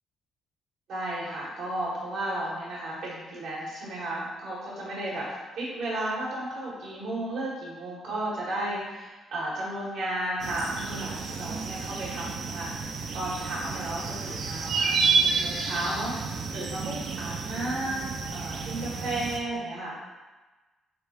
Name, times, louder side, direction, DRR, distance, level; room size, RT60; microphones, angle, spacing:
voice 1, 0.9-5.3 5.5-19.9, right 1 dB, 80° right, -6 dB, 1.3 m, -34 dB
sound 1, 10.4-19.4, right 4 dB, 65° right, 0.4 m, -30 dB
3.4 x 2.4 x 4.1 m, 1.2 s
cardioid pair, 90°, 0 cm